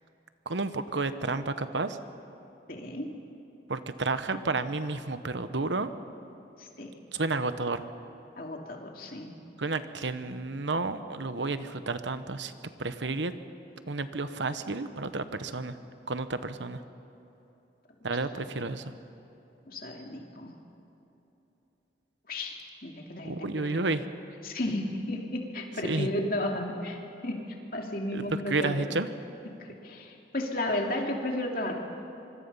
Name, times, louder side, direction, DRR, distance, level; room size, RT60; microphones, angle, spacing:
voice 1, 0.5-2.0 3.7-5.9 7.1-7.8 9.6-12.5 12.8-13.3 13.9-15.7 16.1-16.8 18.0-18.9 23.2-24.0 25.8-26.1 28.1-29.1, right 3 dB, 80° right, 11 dB, 1.1 m, -31 dB
voice 2, 2.7-3.1 6.6-7.0 8.4-9.3 18.3-18.4 19.6-20.5 22.3-24.0 24.4-27.4 27.7-28.9 29.4-31.8, left 1 dB, 50° left, 1 dB, 2.7 m, -34 dB
25.5 x 25.0 x 5.6 m, 3.0 s
head